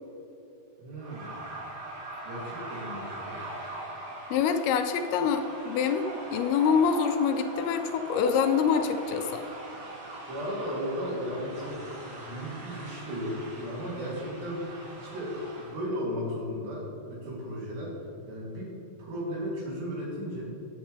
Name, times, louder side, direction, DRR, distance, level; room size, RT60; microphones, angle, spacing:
voice 1, 0.8-1.4 2.2-3.4 10.3-20.4, equal, 75° right, -5 dB, 5.1 m, -35 dB
sound 1, 1.0-15.8, right 2 dB, 45° right, 3.9 m, -41 dB
voice 2, 4.3-9.4, left 6 dB, 80° left, 6 dB, 2.3 m, -26 dB
15.0 x 9.5 x 3.4 m, 2.9 s
omnidirectional pair, 5.0 m